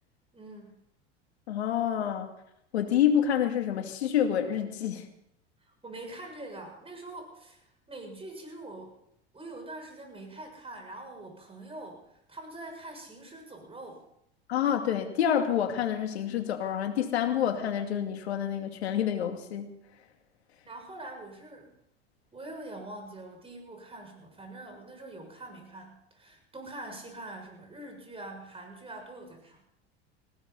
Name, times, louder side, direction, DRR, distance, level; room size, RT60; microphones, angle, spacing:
voice 1, 0.3-0.8 5.8-9.0 9.3-14.0 20.6-21.7 22.3-29.6, right 2 dB, 15° right, 3 dB, 6.7 m, -44 dB
voice 2, 1.5-2.3 2.7-5.0 14.5-19.8, left 9 dB, 80° left, 5 dB, 2.5 m, -28 dB
19.5 x 16.5 x 4.1 m, 0.77 s
hypercardioid pair, 85°, 32 cm